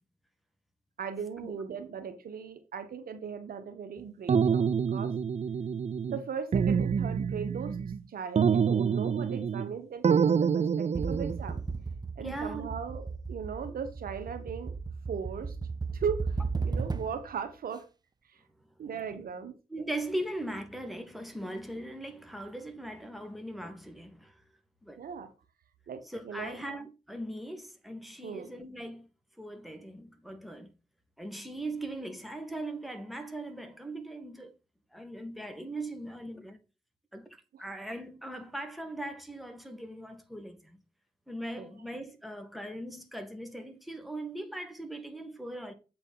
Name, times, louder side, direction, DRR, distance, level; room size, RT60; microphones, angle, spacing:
voice 1, 1.0-4.6 4.9-5.1 6.1-7.8 8.1-11.6 12.2-14.7 15.1-15.5 15.9-16.3 16.6-17.8 18.8-19.5 21.4-21.5 25.0-25.3 25.9-26.6 28.2-28.5 41.6-41.7, right 6 dB, 80° right, 1.2 m, -38 dB
sound 1, 4.3-6.2 6.5-8.0 8.4-9.7 10.0-11.4, right 6 dB, 45° right, 0.5 m, -27 dB
sound 2, 11.0-17.3, right 4 dB, 25° right, 0.8 m, -35 dB
voice 2, 12.2-12.7 19.7-24.3 24.8-25.0 26.1-29.1 29.4-30.7 31.2-34.5 34.9-36.6 37.1-40.8 41.3-45.7, right 1 dB, ahead, 1.7 m, -39 dB
7.9 x 4.1 x 5.4 m
cardioid pair, 50°, 15 cm